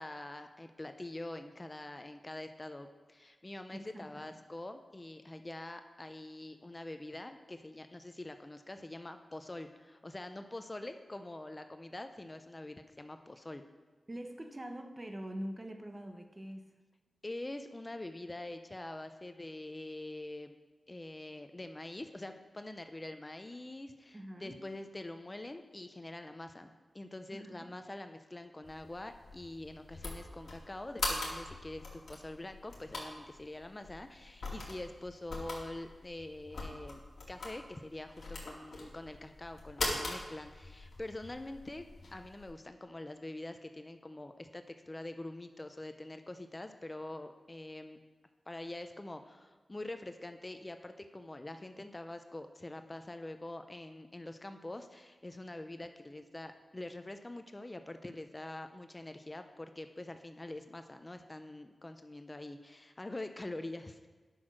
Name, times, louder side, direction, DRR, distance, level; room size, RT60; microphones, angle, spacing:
voice 1, 0.0-13.6 17.2-20.6 20.9-37.0 37.3-48.0 48.5-64.1, left 1 dB, 25° left, 8 dB, 0.6 m, -45 dB
voice 2, 3.7-4.4 14.1-16.7 24.1-24.6 27.3-27.7, equal, 25° right, 5 dB, 1.0 m, -44 dB
sound 1, 28.6-42.5, left 2 dB, 70° left, 2.5 m, -42 dB
9.9 x 6.2 x 6.4 m, 1.4 s
wide cardioid pair, 70°, 0 cm